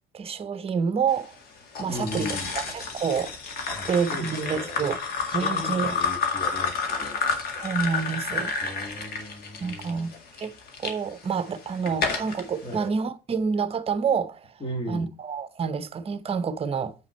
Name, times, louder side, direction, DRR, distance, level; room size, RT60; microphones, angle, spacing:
voice 1, 0.1-1.4 1.8-3.3 3.9-5.0 5.3-5.9 7.6-8.5 9.6-10.1 10.4-10.5 10.8-14.5 14.9-16.9, right 6 dB, 35° right, 0.8 m, -28 dB
sound 1, 1.8-10.9 11.5-12.4, left 5 dB, 65° left, 2.0 m, -30 dB
voice 2, 1.9-2.5 3.7-4.9 5.3-7.8 8.6-10.2 11.9-12.0 12.6-12.9 14.6-15.1, left 1 dB, 25° left, 2.1 m, -37 dB
7.7 x 5.7 x 4.3 m
cardioid pair, 110°, 17 cm